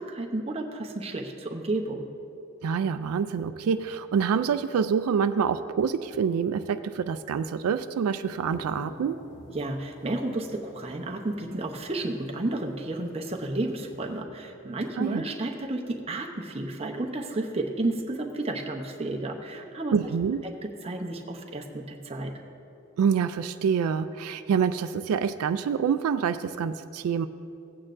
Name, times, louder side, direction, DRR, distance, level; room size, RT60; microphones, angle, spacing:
voice 1, 0.0-2.1 9.5-20.0 20.4-22.3, right 2 dB, 25° right, 2 dB, 0.7 m, -32 dB
voice 2, 2.6-9.2 15.0-15.2 19.9-20.4 23.0-27.3, right 6 dB, 90° right, 11 dB, 0.3 m, -26 dB
sound 1, 8.2-14.2, left 2 dB, 55° left, 0.7 m, -49 dB
16.5 x 8.6 x 2.5 m, 2.8 s
head